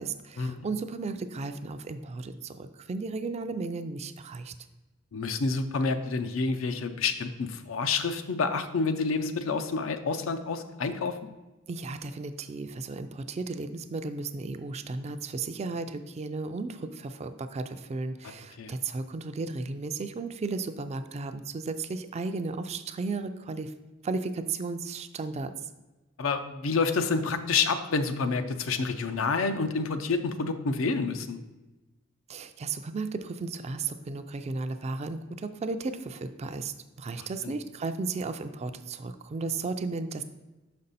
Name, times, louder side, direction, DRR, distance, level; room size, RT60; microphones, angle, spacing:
voice 1, 0.0-4.5 11.7-23.7 24.0-25.5 32.3-40.2, right 3 dB, 30° right, 9 dB, 0.3 m, -34 dB
voice 2, 5.1-11.2 18.2-18.7 26.2-31.4 37.4-37.5, left 4 dB, 75° left, 9 dB, 0.5 m, -28 dB
6.0 x 5.3 x 4.0 m, 1.1 s
head